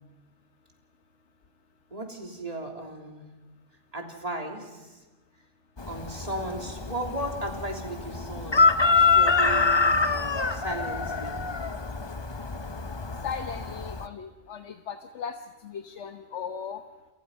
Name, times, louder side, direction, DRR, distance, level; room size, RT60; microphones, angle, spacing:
voice 1, 1.9-3.3 3.9-5.0 5.9-8.6 8.9-11.4, right 1 dB, 30° right, 2 dB, 3.4 m, -36 dB
Chicken rooster, 5.8-14.1, left 4 dB, 25° left, 0.8 m, -25 dB
voice 2, 13.2-15.4 15.6-16.8, left 7 dB, 75° left, 8 dB, 1.3 m, -37 dB
29.5 x 27.0 x 5.6 m, 1.2 s
omnidirectional pair, 1.2 m